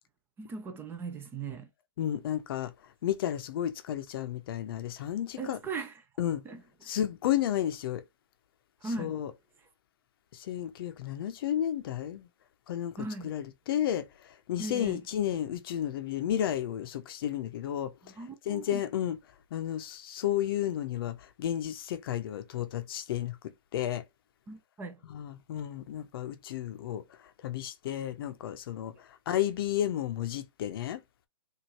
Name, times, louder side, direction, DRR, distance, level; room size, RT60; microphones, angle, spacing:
voice 1, 0.4-1.7 5.4-6.0 6.4-6.9 8.8-9.2 13.0-13.3 14.6-15.0 18.0-18.8 24.5-25.0, right 3 dB, 15° right, 0.7 m, -39 dB
voice 2, 2.0-2.7 3.0-5.6 6.2-6.4 6.8-8.0 9.0-9.3 10.3-12.3 12.7-17.9 18.5-19.2 19.5-23.4 23.7-24.0 25.1-27.0 27.4-31.0, left 11 dB, 45° left, 0.8 m, -32 dB
6.2 x 2.7 x 3.0 m
hypercardioid pair, 135°, 16 cm